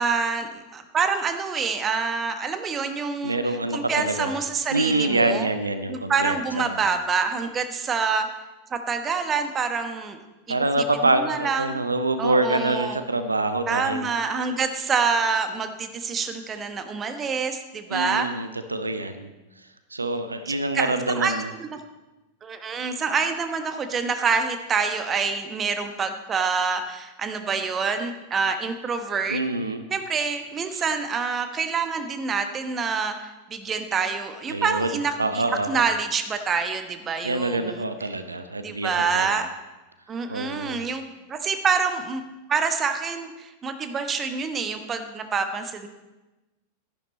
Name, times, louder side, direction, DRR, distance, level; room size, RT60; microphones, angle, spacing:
voice 1, 0.0-3.4 3.7-5.5 5.9-8.3 8.7-10.2 10.5-10.6 11.0-11.8 12.2-13.0 13.7-18.3 20.5-21.8 22.4-29.4 29.9-37.8 38.6-39.5 40.1-41.0 41.3-42.2 42.5-45.9, right 5 dB, 20° right, 8 dB, 1.0 m, -26 dB
voice 2, 3.2-4.3 4.7-6.8 10.5-14.1 17.9-19.3 19.9-21.5 29.3-29.8 30.7-30.8 34.5-35.8 37.2-39.3 40.3-40.8, right 2 dB, 80° right, 10 dB, 0.6 m, -26 dB
11.5 x 11.0 x 4.2 m, 1.1 s
figure-of-eight pair, 90°, 0 cm